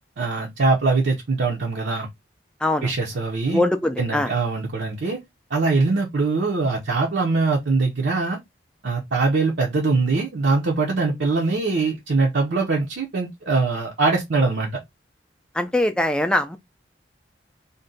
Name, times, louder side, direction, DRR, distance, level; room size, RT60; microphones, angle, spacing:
voice 1, 0.2-2.1 2.8-3.6 4.0-5.2 5.5-8.4 8.8-14.8, right 3 dB, 70° right, 0.6 m, -22 dB
voice 2, 3.5-4.3 15.6-16.6, left 1 dB, 5° left, 0.3 m, -22 dB
2.6 x 2.1 x 3.7 m
head